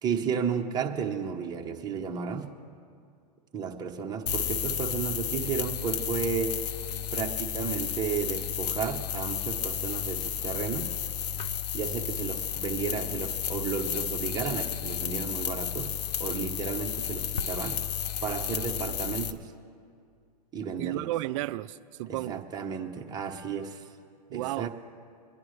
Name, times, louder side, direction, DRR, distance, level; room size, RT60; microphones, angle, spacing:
voice 1, 0.0-2.5 3.5-6.6 7.1-10.9 11.7-15.9 16.2-17.8 18.2-19.5 20.5-21.0 22.1-23.8 24.3-24.7, right 6 dB, 20° right, 1 dB, 1.1 m, -33 dB
sound 1, 4.3-19.3, left 9 dB, 75° left, 0.8 m, -32 dB
voice 2, 20.8-22.4 24.3-24.7, right 16 dB, 45° right, 15 dB, 0.4 m, -33 dB
24.0 x 10.5 x 3.3 m, 2.3 s
hypercardioid pair, 130°, 21 cm